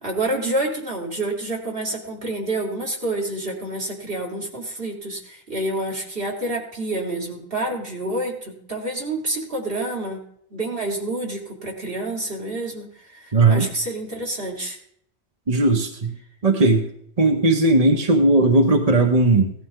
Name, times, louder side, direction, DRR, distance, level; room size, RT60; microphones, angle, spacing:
voice 1, 0.0-10.2 10.5-14.8, right 2 dB, 60° right, -2 dB, 2.9 m, -28 dB
voice 2, 13.3-13.7 15.5-16.1 16.4-16.9 17.2-19.5, right 2 dB, 35° right, 2 dB, 1.2 m, -17 dB
17.0 x 12.0 x 3.8 m, 0.69 s
omnidirectional pair, 1.1 m